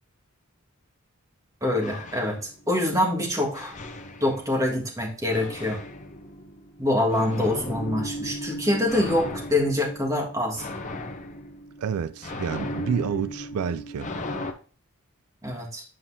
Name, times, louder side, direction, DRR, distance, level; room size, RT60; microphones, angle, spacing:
voice 1, 1.6-3.7 4.2-5.8 6.8-10.6 15.4-15.8, left 1 dB, 15° right, 1.7 m, -25 dB
sound 1, 1.8-3.0 3.5-4.8 5.3-14.5, left 1 dB, 35° left, 0.7 m, -36 dB
voice 2, 11.8-14.1, right 7 dB, 85° right, 0.4 m, -29 dB
7.7 x 5.4 x 2.7 m
head